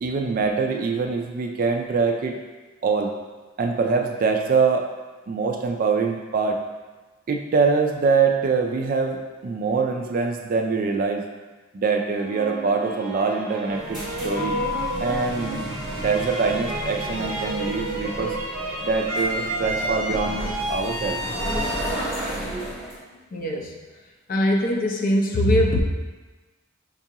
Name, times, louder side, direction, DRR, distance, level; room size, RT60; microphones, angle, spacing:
voice 1, 0.0-2.3 2.8-3.1 3.6-4.9 5.3-6.6 7.3-11.2 11.7-14.5 15.0-18.4 18.8-21.2, right 4 dB, 40° right, 3 dB, 0.3 m, -24 dB
sound 1, 12.1-23.2, right 2 dB, 65° right, 0.9 m, -31 dB
sound 2, 13.7-23.0, left 1 dB, 5° right, 1.1 m, -32 dB
voice 2, 23.3-23.7 24.3-25.8, equal, 40° left, 1 dB, 0.4 m, -21 dB
5.3 x 2.4 x 2.8 m, 1.3 s
head